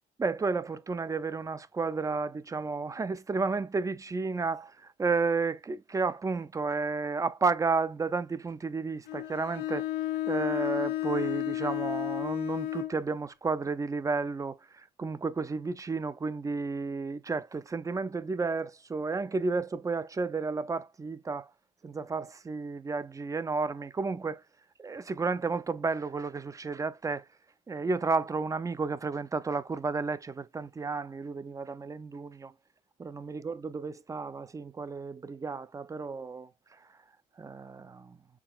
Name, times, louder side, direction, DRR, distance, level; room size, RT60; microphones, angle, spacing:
voice 1, 0.2-9.9 10.3-21.5 21.8-24.4 24.8-27.2 27.7-32.5 33.0-36.5 37.4-38.2, right 4 dB, 20° right, 0.5 m, -32 dB
Bowed string instrument, 9.1-13.0, left 14 dB, 80° left, 0.9 m, -32 dB
6.0 x 3.8 x 2.3 m
cardioid pair, 110°, 17 cm